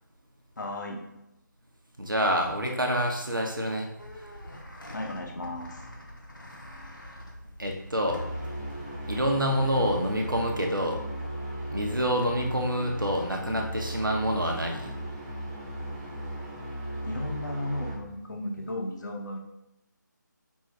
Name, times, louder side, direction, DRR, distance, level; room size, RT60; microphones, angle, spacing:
voice 1, 0.6-1.1 4.9-5.8 17.0-19.4, left 1 dB, 65° left, 1 dB, 0.8 m, -34 dB
voice 2, 2.0-3.9 7.6-8.2 9.1-11.0 11.7-14.9, equal, 85° right, 2 dB, 1.0 m, -27 dB
sound 1, 4.0-10.5, equal, 85° left, 1.1 m, -45 dB
sound 2, 8.0-17.9, right 1 dB, 10° right, 0.5 m, -37 dB
5.5 x 2.7 x 3.3 m, 0.91 s
figure-of-eight pair, 155°, 11 cm